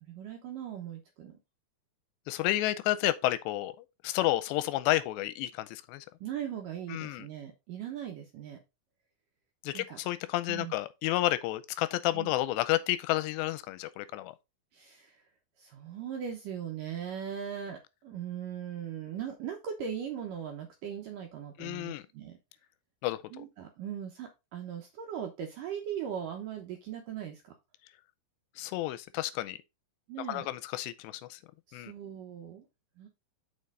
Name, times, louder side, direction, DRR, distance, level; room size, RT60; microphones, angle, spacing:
voice 1, 0.0-1.4 6.2-8.6 9.7-10.0 10.5-10.7 12.1-12.3 14.7-15.2 15.6-22.4 23.3-27.5 30.1-30.5 31.7-32.7 33.0-33.1, right 8 dB, 75° right, 2.1 m, -39 dB
voice 2, 2.3-3.7 4.0-6.1 6.9-7.3 9.6-14.3 21.6-22.0 23.0-23.4 28.6-29.6 30.3-31.4 31.7-31.9, left 16 dB, 90° left, 2.8 m, -31 dB
6.6 x 5.5 x 3.9 m
omnidirectional pair, 4.9 m